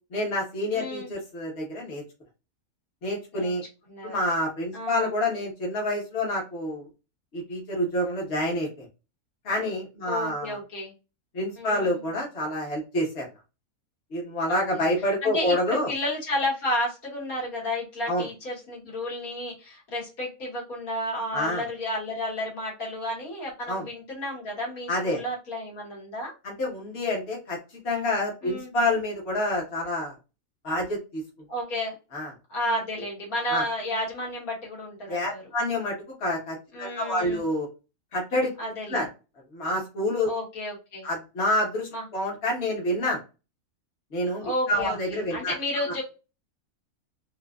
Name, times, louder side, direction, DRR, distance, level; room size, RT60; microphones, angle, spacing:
voice 1, 0.1-2.0 3.0-3.6 4.0-6.9 7.3-8.9 9.4-10.6 11.3-13.3 14.1-15.9 18.1-18.3 21.3-21.6 23.7-23.8 24.9-25.2 26.4-27.6 27.8-30.1 30.6-31.2 32.1-32.3 33.5-33.6 35.1-37.7 38.1-38.5 38.9-39.1 39.5-40.3 41.0-43.2 44.1-45.8, left 1 dB, 45° left, -3 dB, 1.4 m, -28 dB
voice 2, 0.7-1.1 3.3-3.5 3.9-4.2 4.7-5.1 10.1-10.9 11.6-12.0 14.5-14.9 15.2-26.3 28.4-28.7 31.5-31.9 32.5-35.4 36.7-37.4 38.6-39.0 40.3-41.1 41.9-42.0 44.4-46.0, left 1 dB, 70° left, -4 dB, 2.1 m, -32 dB
3.8 x 2.6 x 2.3 m, 0.29 s
omnidirectional pair, 1.6 m